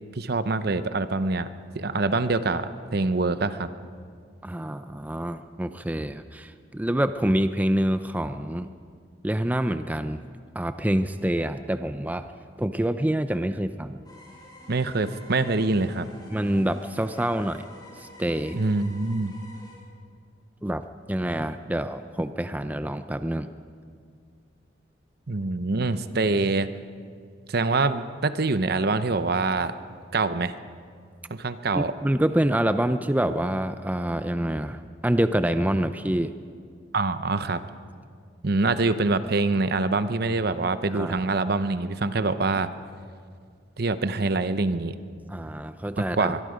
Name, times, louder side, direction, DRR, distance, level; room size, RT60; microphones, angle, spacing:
voice 1, 0.2-1.5 1.7-3.7 14.7-16.1 18.5-19.3 25.3-26.7 27.5-29.7 30.1-30.5 31.3-31.9 36.9-37.6 38.4-42.7 43.8-44.9 46.2-46.4, right 3 dB, 60° right, 12 dB, 0.8 m, -25 dB
voice 2, 4.4-8.7 9.2-10.2 10.5-12.3 12.6-14.0 16.3-17.7 18.0-18.6 20.6-23.5 31.7-36.3 40.9-41.2 45.3-46.3, right 1 dB, 10° right, 10 dB, 0.5 m, -26 dB
sound 1, 14.0-19.7, left 2 dB, 25° left, 8.0 m, -49 dB
23.5 x 22.5 x 5.1 m, 2.1 s
head